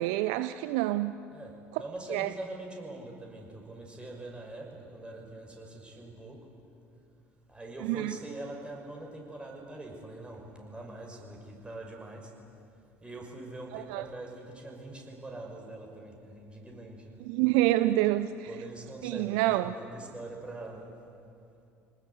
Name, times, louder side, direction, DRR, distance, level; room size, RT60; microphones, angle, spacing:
voice 1, 0.0-1.1 2.1-2.3 7.8-8.1 13.7-14.0 17.3-18.3 19.0-19.7, right 16 dB, 60° right, 12 dB, 0.6 m, -27 dB
voice 2, 1.3-6.5 7.5-12.3 13.0-17.3 18.4-20.9, right 2 dB, 15° right, 0 dB, 6.0 m, -43 dB
28.0 x 19.5 x 8.5 m, 2.6 s
figure-of-eight pair, 60°, 7 cm